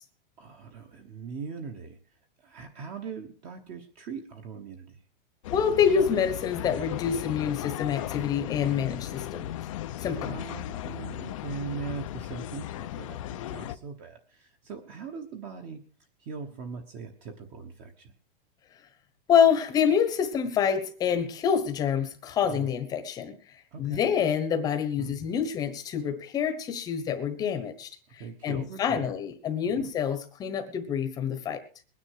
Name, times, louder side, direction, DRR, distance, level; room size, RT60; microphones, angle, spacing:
voice 1, 0.4-2.0 2.4-5.0 10.2-15.8 16.2-18.1 22.5-22.7 23.7-24.0 25.0-25.2 28.2-29.2 29.8-29.9, right 5 dB, 25° right, 1.1 m, -40 dB
sound 1, 5.4-13.7, left 13 dB, 35° left, 0.6 m, -36 dB
voice 2, 5.5-9.5 10.0-10.4 19.3-23.3 23.8-31.6, left 7 dB, 15° left, 1.1 m, -27 dB
21.0 x 9.8 x 4.7 m
supercardioid pair, 175°, 29 cm